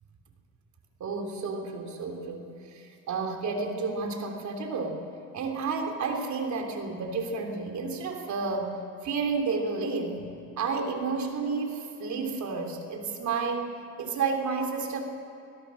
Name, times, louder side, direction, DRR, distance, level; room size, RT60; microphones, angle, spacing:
voice 1, 1.0-5.0 5.3-8.8 9.0-10.2 10.6-15.0, right 4 dB, 70° right, 3 dB, 3.6 m, -31 dB
25.0 x 17.5 x 6.5 m, 3.0 s
cardioid pair, 90°, 30 cm